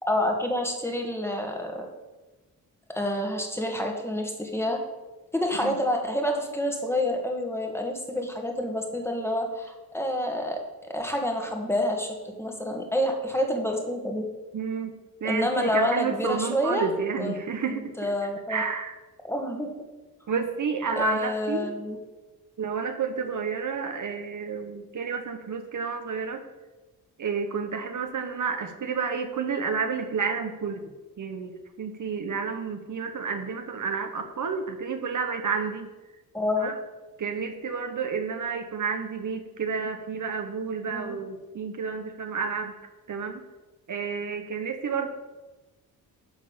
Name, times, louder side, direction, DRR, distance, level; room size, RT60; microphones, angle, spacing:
voice 1, 0.0-1.9 2.9-4.8 5.3-10.6 10.9-14.2 15.2-16.9 17.2-17.4 17.7-18.6 19.2-19.7 21.0-22.0 36.3-36.7 40.9-41.1, left 1 dB, 5° left, 2 dB, 1.6 m, -28 dB
voice 2, 14.5-14.9 15.2-18.1 18.5-18.9 20.3-21.7 22.6-26.4 27.2-30.8 31.2-35.9 36.6-36.7 37.2-42.7 43.1-43.4 43.9-45.1, right 5 dB, 50° right, 6 dB, 1.0 m, -30 dB
10.5 x 3.6 x 7.2 m, 1.2 s
cardioid pair, 85°, 38 cm